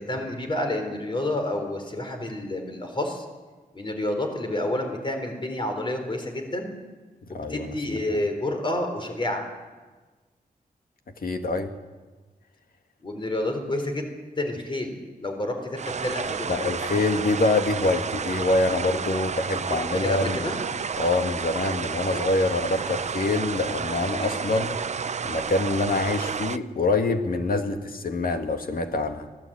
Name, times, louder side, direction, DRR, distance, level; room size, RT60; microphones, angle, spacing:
voice 1, 0.0-3.2 3.7-6.7 7.3-9.5 13.0-14.1 14.4-16.6 19.5-19.6 19.9-20.6 23.9-24.5 27.7-27.9, left 1 dB, 30° left, 4 dB, 3.9 m, -29 dB
voice 2, 7.3-7.7 11.2-11.7 16.5-20.4 21.0-24.7 25.2-29.3, left 2 dB, 70° left, 6 dB, 2.0 m, -25 dB
sound 1, 15.8-26.6, right 6 dB, 50° right, 0.6 m, -31 dB
24.5 x 18.0 x 8.8 m, 1.3 s
wide cardioid pair, 155°, 16 cm